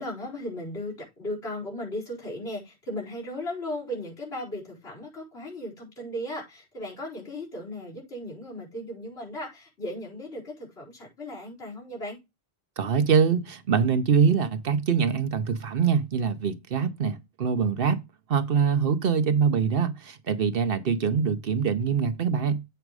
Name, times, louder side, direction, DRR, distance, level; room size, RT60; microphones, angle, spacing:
voice 1, 0.0-12.2, left 1 dB, 75° left, 4.9 m, -36 dB
voice 2, 12.8-18.0 18.3-22.6, right 6 dB, 60° right, 1.0 m, -24 dB
8.1 x 5.0 x 4.7 m
omnidirectional pair, 1.1 m